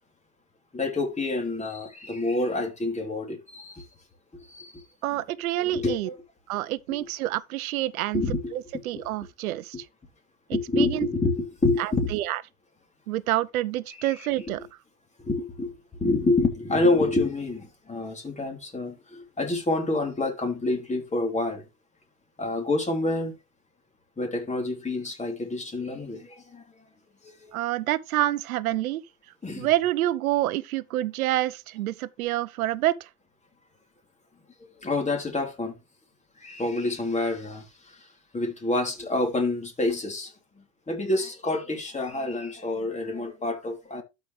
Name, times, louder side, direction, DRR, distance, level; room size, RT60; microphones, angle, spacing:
voice 1, 0.7-3.8 4.5-4.8 5.1-5.2 5.6-6.1 8.1-8.5 10.5-12.1 14.0-14.3 15.2-21.6 22.4-23.4 24.2-26.6 27.2-27.6 29.4-29.7 34.8-35.7 36.4-38.1 38.3-44.0, left 2 dB, 15° left, 3.3 m, -28 dB
voice 2, 5.0-6.1 6.5-8.2 8.5-9.8 10.5-11.1 11.8-12.4 13.1-14.6 27.5-29.0 29.6-33.1, right 15 dB, 80° right, 0.7 m, -27 dB
12.5 x 5.2 x 3.2 m
hypercardioid pair, 90°, 42 cm